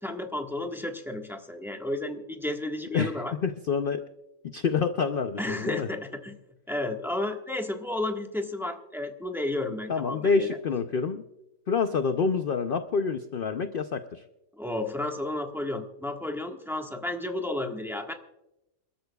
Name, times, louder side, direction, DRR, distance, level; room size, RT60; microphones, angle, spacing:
voice 1, 0.0-3.3 5.4-6.4 6.7-10.6 14.6-18.1, left 2 dB, ahead, 3 dB, 1.2 m, -32 dB
voice 2, 2.9-4.1 4.4-5.9 9.9-11.2 11.7-14.2, left 5 dB, 55° left, 8 dB, 0.6 m, -27 dB
28.0 x 13.0 x 2.3 m, 0.89 s
omnidirectional pair, 1.7 m